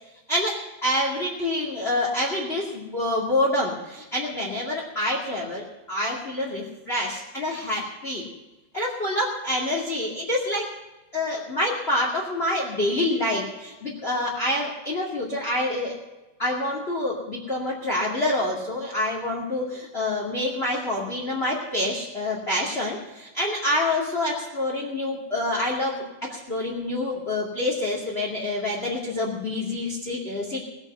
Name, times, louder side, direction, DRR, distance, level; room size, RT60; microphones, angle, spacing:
voice 1, 0.3-8.2 8.7-10.7 11.1-16.0 16.4-30.6, left 1 dB, 20° left, -2 dB, 2.1 m, -27 dB
19.5 x 9.0 x 5.6 m, 1.1 s
omnidirectional pair, 4.1 m